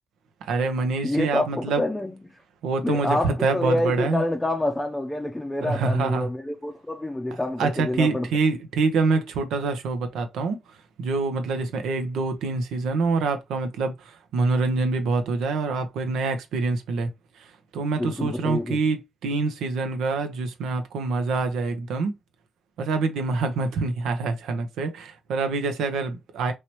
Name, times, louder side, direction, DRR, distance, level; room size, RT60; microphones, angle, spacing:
voice 1, 0.5-1.8 2.6-4.2 5.6-6.3 7.6-10.6 11.0-13.9 14.3-17.1 17.7-22.1 22.8-26.5, right 3 dB, 75° right, 0.7 m, -25 dB
voice 2, 1.0-2.2 2.8-8.3 18.0-18.8, left 1 dB, 10° left, 0.6 m, -27 dB
3.1 x 2.8 x 3.0 m
hypercardioid pair, 50°, 0 cm